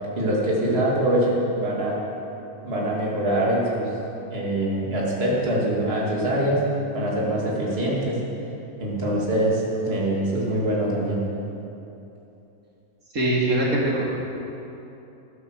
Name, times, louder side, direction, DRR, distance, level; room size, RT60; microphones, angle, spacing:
voice 1, 0.2-2.0 2.6-3.9 4.3-6.6 6.9-8.2 8.8-11.2, right 1 dB, 40° right, -5 dB, 2.7 m, -24 dB
voice 2, 13.1-14.0, right 1 dB, 70° right, -4 dB, 3.0 m, -22 dB
13.0 x 11.0 x 6.5 m, 2.9 s
omnidirectional pair, 1.6 m